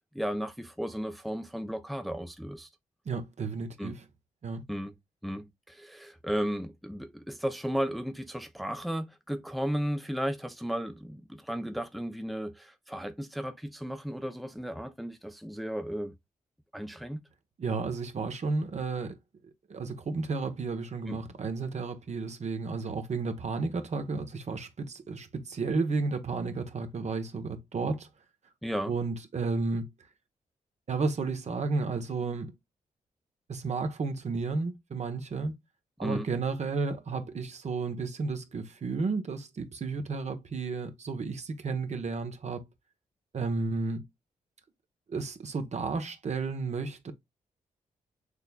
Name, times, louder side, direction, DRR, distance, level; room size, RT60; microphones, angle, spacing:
voice 1, 0.1-2.7 3.8-3.9 4.7-4.9 5.2-16.1 16.7-17.2 21.1-21.2 28.6-28.9 36.0-36.3, equal, ahead, 0.8 m, -34 dB
voice 2, 3.0-4.0 4.4-4.6 17.6-19.2 19.7-28.1 28.9-29.9 30.9-32.5 33.5-35.5 36.0-42.7 43.3-44.0 45.1-47.1, right 4 dB, 55° right, 1.2 m, -32 dB
6.6 x 3.4 x 2.3 m
supercardioid pair, 50°, 14 cm